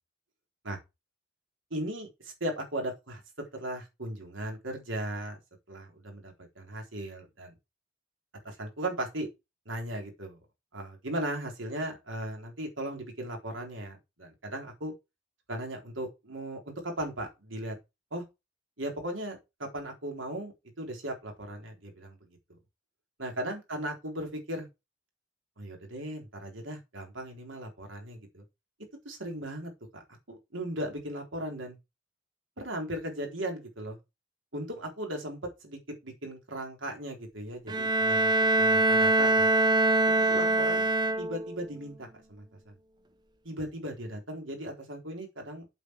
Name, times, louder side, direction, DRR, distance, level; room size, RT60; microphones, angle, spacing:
voice 1, 1.7-3.2 3.5-5.4 5.7-7.5 8.4-9.3 9.7-10.4 10.7-14.9 15.5-17.8 18.1-18.2 18.8-22.2 23.2-24.7 25.6-28.4 29.0-30.0 30.3-31.8 32.6-34.0 34.5-38.3 38.6-39.5 40.2-40.9 41.2-42.7 43.4-45.7, right 1 dB, 80° right, 4.0 m, -37 dB
Bowed string instrument, 37.7-41.6, right 2 dB, 20° right, 0.9 m, -24 dB
8.2 x 7.4 x 4.8 m
head